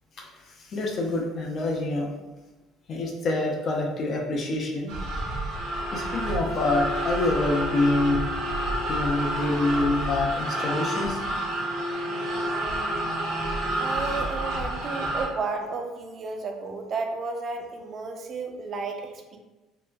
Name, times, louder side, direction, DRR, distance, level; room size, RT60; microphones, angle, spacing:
voice 1, 0.7-2.1 2.9-4.9 5.9-8.2 8.9-11.2, left 2 dB, 50° left, 0 dB, 0.6 m, -26 dB
sound 1, 4.9-15.3, right 1 dB, 80° right, 0.8 m, -29 dB
voice 2, 13.8-19.4, right 4 dB, 50° right, 4 dB, 0.4 m, -32 dB
2.9 x 2.2 x 2.3 m, 1.1 s
supercardioid pair, 85°, 0 cm